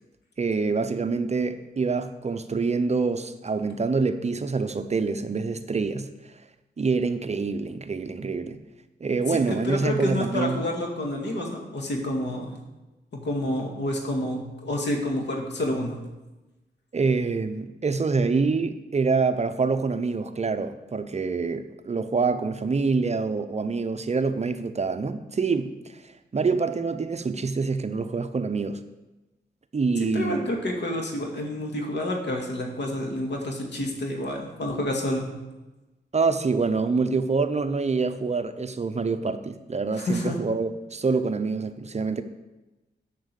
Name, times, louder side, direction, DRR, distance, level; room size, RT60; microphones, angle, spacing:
voice 1, 0.4-6.1 6.8-8.6 9.0-10.6 16.9-25.7 26.3-28.8 29.7-30.5 36.1-42.2, right 4 dB, 40° right, 10 dB, 0.7 m, -26 dB
voice 2, 9.3-12.5 13.1-16.0 30.1-35.3 40.0-40.4, left 1 dB, 75° left, 1 dB, 2.1 m, -29 dB
7.7 x 7.3 x 6.9 m, 1.1 s
wide cardioid pair, 95°, 18 cm